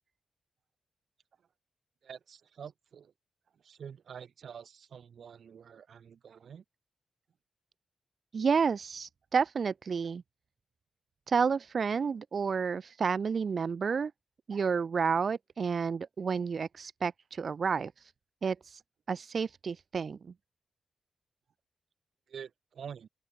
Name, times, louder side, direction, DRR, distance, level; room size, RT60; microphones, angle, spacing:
voice 1, 2.0-3.1 3.5-6.6 22.3-23.1, right 7 dB, 70° right, 1.5 m, -47 dB
voice 2, 8.3-10.2 11.3-14.1 14.5-18.1 18.4-18.8 19.1-20.2, right 5 dB, 50° right, 0.5 m, -30 dB
open air
wide cardioid pair, 120°, 0 cm